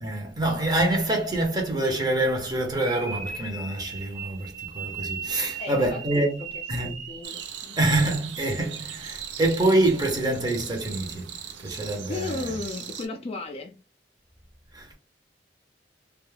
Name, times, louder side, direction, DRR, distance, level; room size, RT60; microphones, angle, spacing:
voice 1, 0.0-6.4 6.7-7.0 7.8-11.3 11.6-12.3 14.7-15.0, right 2 dB, 20° right, 0.6 m, -26 dB
sound 1, 2.7-7.4, right 6 dB, 45° right, 0.9 m, -37 dB
voice 2, 5.6-6.5 6.7-7.8 12.1-13.7, left 3 dB, 35° left, 0.4 m, -35 dB
sound 2, 7.2-13.1, right 8 dB, 80° right, 0.5 m, -38 dB
2.3 x 2.0 x 3.1 m
head